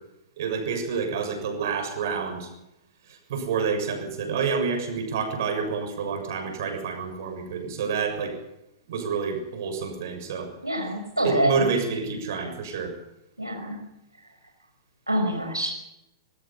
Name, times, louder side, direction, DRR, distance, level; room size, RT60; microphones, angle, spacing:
voice 1, 0.4-2.5 3.1-8.3 8.9-10.5 11.2-12.9, right 5 dB, 55° right, 5 dB, 7.0 m, -28 dB
voice 2, 10.6-11.7 13.4-13.8 15.1-15.7, right 1 dB, 85° right, 2 dB, 5.3 m, -25 dB
24.0 x 22.5 x 5.7 m, 0.89 s
figure-of-eight pair, 105°, 2 cm